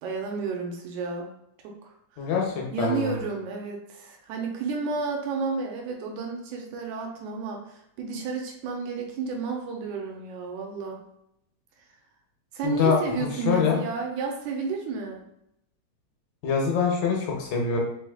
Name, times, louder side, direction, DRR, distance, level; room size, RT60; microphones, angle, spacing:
voice 1, 0.0-1.3 1.6-1.9 2.2-2.3 2.7-11.0 12.5-15.2, right 4 dB, 85° right, 2 dB, 2.1 m, -31 dB
voice 2, 2.2-3.1 12.6-13.8 16.4-17.8, left 5 dB, 75° left, -1 dB, 1.9 m, -25 dB
4.8 x 3.4 x 2.3 m, 0.77 s
omnidirectional pair, 3.5 m